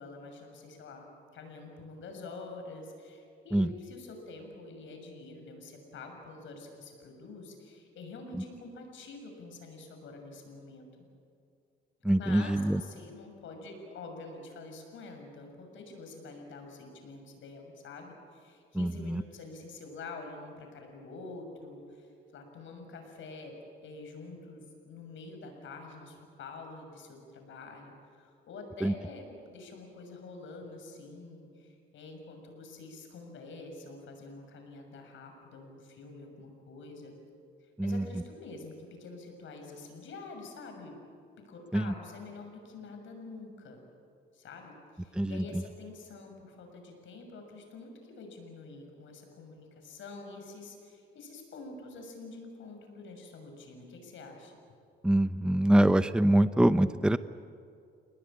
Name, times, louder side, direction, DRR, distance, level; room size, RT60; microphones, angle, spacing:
voice 1, 0.0-10.9 12.1-23.5 23.8-37.1 37.6-41.0 41.4-43.8 44.3-54.5, left 3 dB, 75° left, 4 dB, 6.6 m, -47 dB
voice 2, 12.0-12.8 18.7-19.2 28.8-28.9 37.8-38.0 41.7-41.8 45.2-45.4 55.0-57.2, right 1 dB, 5° right, 12 dB, 0.7 m, -24 dB
29.0 x 19.5 x 8.8 m, 2.4 s
cardioid pair, 90°, 20 cm